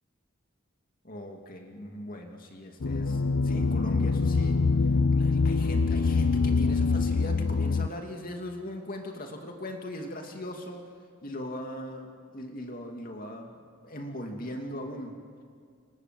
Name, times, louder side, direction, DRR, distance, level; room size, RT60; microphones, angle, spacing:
voice 1, 1.0-4.6 5.1-10.9 11.2-13.5 13.8-15.1, equal, 40° left, 3 dB, 2.7 m, -39 dB
sound 1, 2.8-7.9, left 4 dB, 70° left, 0.6 m, -24 dB
28.5 x 26.5 x 7.8 m, 2.1 s
head